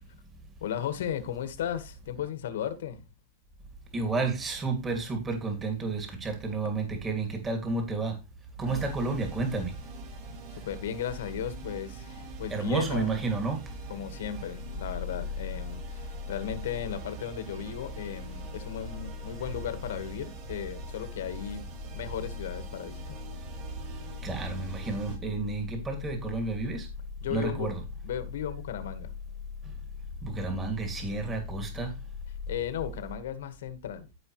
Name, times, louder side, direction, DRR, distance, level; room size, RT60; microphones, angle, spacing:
voice 1, 0.6-3.0 8.6-8.8 10.5-13.2 13.9-21.6 21.9-23.2 27.2-27.7 28.0-29.1 31.1-31.2 32.5-34.1, left 9 dB, 80° left, 1.7 m, -35 dB
voice 2, 3.9-8.2 8.6-9.7 12.5-13.6 24.2-26.9 27.3-27.8 30.2-31.9, right 3 dB, 15° right, 2.5 m, -31 dB
sound 1, 8.6-25.2, right 4 dB, 45° right, 3.6 m, -43 dB
14.5 x 5.1 x 3.2 m
supercardioid pair, 145°, 0 cm